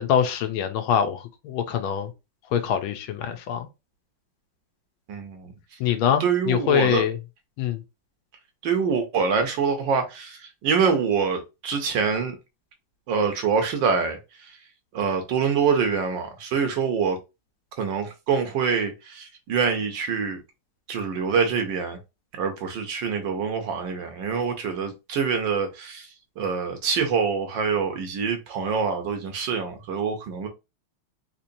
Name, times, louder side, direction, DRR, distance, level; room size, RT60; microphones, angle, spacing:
voice 1, 0.0-2.1 2.5-3.7 5.8-7.2 7.6-7.8, left 9 dB, 75° left, 1.4 m, -24 dB
voice 2, 5.1-5.5 6.2-7.0 8.6-12.3 13.1-14.2 14.9-17.2 17.8-20.4 20.9-22.0 22.4-26.1 26.4-30.5, right 6 dB, 70° right, 1.3 m, -25 dB
3.8 x 2.9 x 2.6 m
omnidirectional pair, 2.4 m